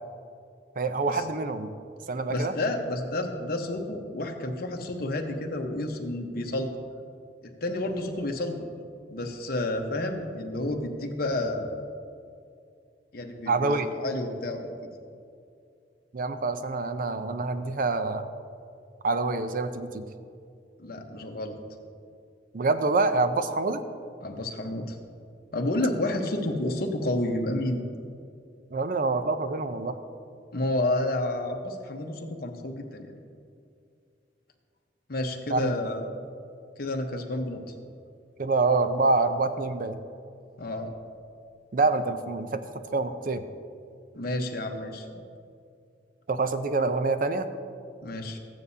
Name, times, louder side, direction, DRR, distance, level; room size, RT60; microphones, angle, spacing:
voice 1, 0.8-1.7 2.1-2.5 13.5-13.9 16.1-18.3 19.0-20.0 22.5-23.8 28.7-30.0 35.5-35.7 38.4-40.0 41.7-42.6 42.9-43.4 46.3-47.5, right 3 dB, 50° right, 10 dB, 0.5 m, -26 dB
voice 2, 2.3-6.7 7.4-8.7 9.1-11.9 13.1-14.7 20.8-21.6 24.2-25.0 25.5-27.8 30.5-33.1 35.1-36.1 36.8-37.6 40.6-40.9 44.1-45.1 48.0-48.4, left 1 dB, 55° left, 3 dB, 1.0 m, -30 dB
14.5 x 9.0 x 2.8 m, 2.4 s
head